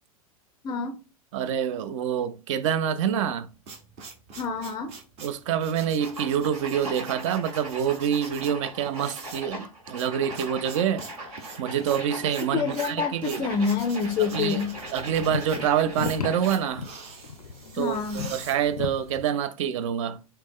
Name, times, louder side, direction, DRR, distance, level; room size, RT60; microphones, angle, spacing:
voice 1, 0.6-1.0 4.3-4.9 12.5-14.8 17.7-18.4, left 5 dB, 20° left, 0.4 m, -27 dB
voice 2, 1.3-3.5 5.2-11.0 11.6-13.4 14.3-14.6 14.9-16.8 17.8-18.0 18.3-20.2, right 9 dB, 60° right, 0.4 m, -26 dB
sound 1, 3.3-19.2, right 5 dB, 35° right, 0.8 m, -45 dB
sound 2, 6.0-16.8, right 1 dB, 75° right, 1.4 m, -39 dB
sound 3, 13.4-19.2, left 5 dB, 90° left, 0.4 m, -37 dB
3.5 x 2.2 x 3.5 m
figure-of-eight pair, 95°, 19 cm